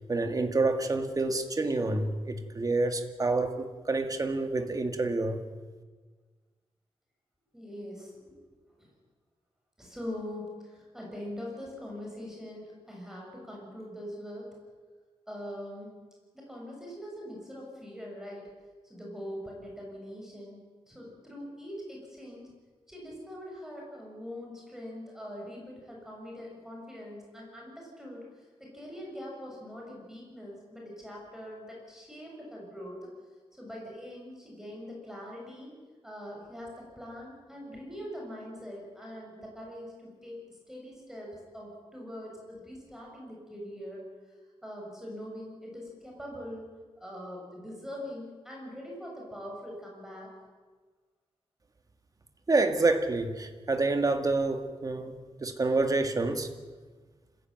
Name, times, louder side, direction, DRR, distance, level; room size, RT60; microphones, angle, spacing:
voice 1, 0.1-5.4 52.5-56.5, right 3 dB, 35° right, 7 dB, 2.0 m, -28 dB
voice 2, 7.5-8.1 8.8-8.9 9.8-14.5 15.3-16.0 16.3-18.5 18.8-20.6 20.9-22.5 22.9-33.1 33.5-35.7 36.0-44.0 44.6-46.7 47.0-50.3, equal, 5° right, -2 dB, 7.0 m, -42 dB
26.0 x 16.0 x 9.3 m, 1.4 s
wide cardioid pair, 160°, 11 cm